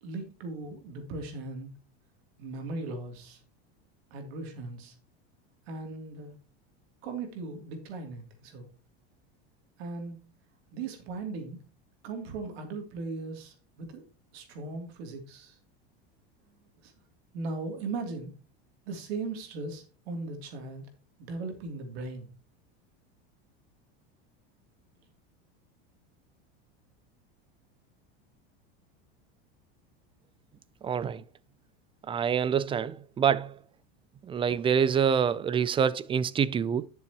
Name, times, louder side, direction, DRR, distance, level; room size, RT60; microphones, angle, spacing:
voice 1, 0.0-1.7 2.4-3.4 4.1-4.9 5.7-6.3 7.0-8.7 9.8-10.2 10.7-11.6 12.0-14.0 14.3-15.6 16.8-16.9 17.3-18.3 18.9-20.9 21.2-22.3, right 3 dB, 75° right, 2.9 m, -38 dB
voice 2, 30.8-31.2 32.1-33.6 34.3-36.9, right 7 dB, 15° right, 0.4 m, -26 dB
11.5 x 6.9 x 2.9 m
supercardioid pair, 130°, 31 cm